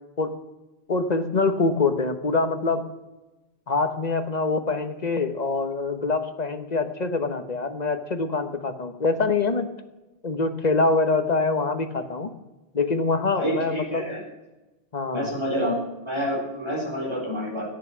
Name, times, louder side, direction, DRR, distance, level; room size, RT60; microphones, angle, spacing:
voice 1, 0.9-2.9 3.7-9.7 10.2-12.3 12.7-14.0 14.9-15.3, left 3 dB, 40° left, 9 dB, 1.2 m, -24 dB
voice 2, 13.3-14.2 15.1-15.8 16.0-17.7, equal, 25° right, -3 dB, 4.1 m, -28 dB
14.5 x 10.0 x 6.1 m, 1.1 s
omnidirectional pair, 1.1 m